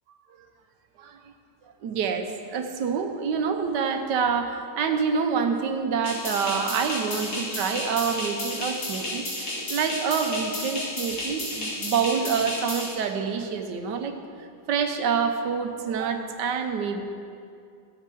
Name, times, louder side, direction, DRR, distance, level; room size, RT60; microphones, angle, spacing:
voice 1, 1.8-9.3 9.7-14.2 14.7-17.0, right 6 dB, 85° right, 6 dB, 1.5 m, -27 dB
sound 1, 6.0-12.9, left 1 dB, 75° left, 3.2 m, -32 dB
15.0 x 6.8 x 4.5 m, 2.4 s
omnidirectional pair, 1.8 m